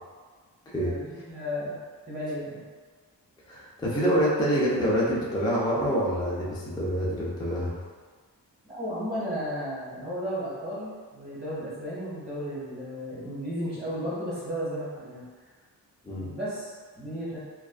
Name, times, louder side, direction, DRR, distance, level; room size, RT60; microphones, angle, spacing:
voice 1, 0.8-1.8 2.1-2.6 8.7-15.2 16.2-17.4, equal, 25° right, -11 dB, 1.3 m, -34 dB
voice 2, 3.5-7.8 16.0-16.3, equal, 10° left, -6 dB, 0.3 m, -26 dB
2.4 x 2.2 x 2.3 m, 1.5 s
wide cardioid pair, 150°, 39 cm